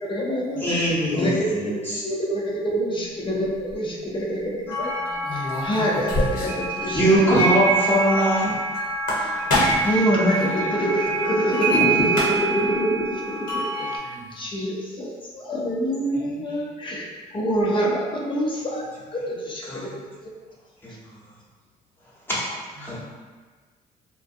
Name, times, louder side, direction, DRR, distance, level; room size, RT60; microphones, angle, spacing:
voice 1, 0.0-1.3 2.0-4.4 4.8-4.9 5.3-7.1 7.4-7.5 9.1-9.4 9.8-17.1 17.3-18.8 19.1-19.9, right 1 dB, 30° left, -4 dB, 0.6 m, -26 dB
voice 2, 0.6-2.0 6.8-8.5 9.8-10.0 10.3-10.8 16.1-16.6 19.6-19.9 20.8-20.9 22.4-22.5 22.8-23.0, equal, 15° left, -8 dB, 0.9 m, -23 dB
sound 1, 3.4-3.7 5.2-6.7 6.9-7.0 7.3-7.4 8.9-10.0 11.7-11.8 12.0-12.6, left 1 dB, 60° left, 0.9 m, -25 dB
sound 2, 4.7-14.0, right 2 dB, 90° left, 0.9 m, -27 dB
voice 3, 4.7-5.6 9.2-10.0 13.8-14.4 22.8-23.0, equal, 80° right, -7 dB, 1.0 m, -45 dB
2.5 x 2.2 x 2.5 m, 1.4 s
supercardioid pair, 80°, 16 cm